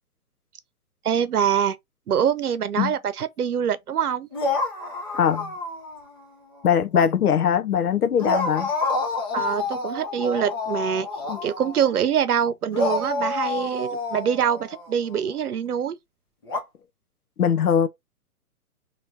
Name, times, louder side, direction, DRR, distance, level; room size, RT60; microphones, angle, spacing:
voice 1, 1.0-1.8 2.1-4.3 9.3-11.1 11.4-16.0, right 8 dB, 80° right, 0.8 m, -24 dB
sound 1, 4.3-6.2 6.5-6.7 8.2-12.1 12.7-15.2 16.5-16.6, left 3 dB, 15° left, 0.4 m, -28 dB
voice 2, 5.1-5.5 6.6-8.7 11.3-11.4 17.4-17.9, left 8 dB, 85° left, 0.7 m, -21 dB
4.1 x 2.9 x 2.6 m
hypercardioid pair, 130°, 44 cm